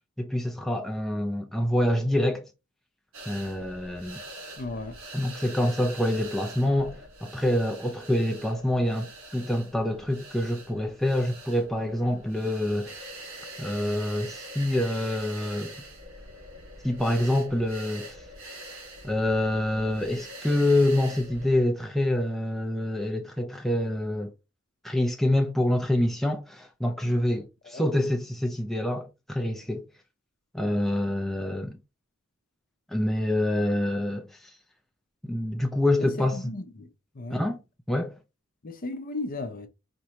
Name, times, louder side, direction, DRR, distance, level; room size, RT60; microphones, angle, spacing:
voice 1, 0.2-2.5 3.3-4.2 5.1-13.0 13.6-15.7 16.8-18.2 19.0-24.3 24.8-29.9 30.5-31.8 32.9-34.5 35.2-36.4 37.3-37.6 37.9-38.1, left 1 dB, ahead, 0.4 m, -26 dB
sound 1, 3.1-21.7, right 1 dB, 70° right, 1.6 m, -44 dB
voice 2, 4.6-5.0 27.6-27.9 36.0-36.9 37.1-37.4 38.6-39.7, left 2 dB, 40° left, 0.6 m, -35 dB
4.3 x 2.6 x 2.9 m
head